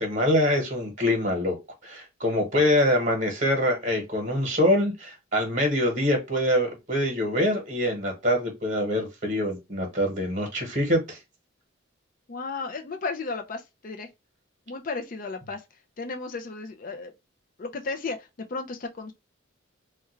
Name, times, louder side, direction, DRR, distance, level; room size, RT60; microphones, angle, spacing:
voice 1, 0.0-1.6 1.8-11.2, left 1 dB, 35° right, 1.1 m, -24 dB
voice 2, 12.3-14.1 14.7-15.6 16.0-17.1 17.6-19.1, left 4 dB, 40° left, 0.4 m, -34 dB
3.5 x 2.2 x 3.1 m
head